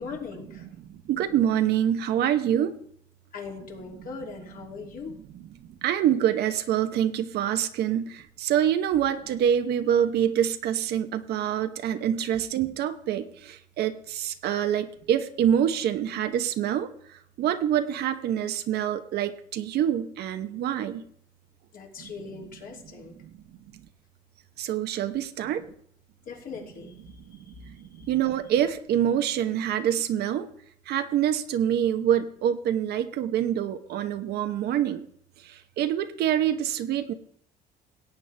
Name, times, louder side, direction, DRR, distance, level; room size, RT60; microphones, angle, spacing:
voice 1, 0.0-0.7 3.3-5.2 21.7-23.2 26.2-28.1, left 5 dB, 55° left, 0 dB, 2.9 m, -40 dB
voice 2, 0.6-2.7 4.0-4.1 5.3-21.0 22.0-22.1 23.0-23.3 23.7-23.9 24.6-25.6 27.3-27.4 27.6-30.5 30.9-35.0 35.4-37.1, right 10 dB, 75° right, 8 dB, 1.0 m, -26 dB
17.5 x 8.6 x 3.4 m, 0.64 s
cardioid pair, 110°, 17 cm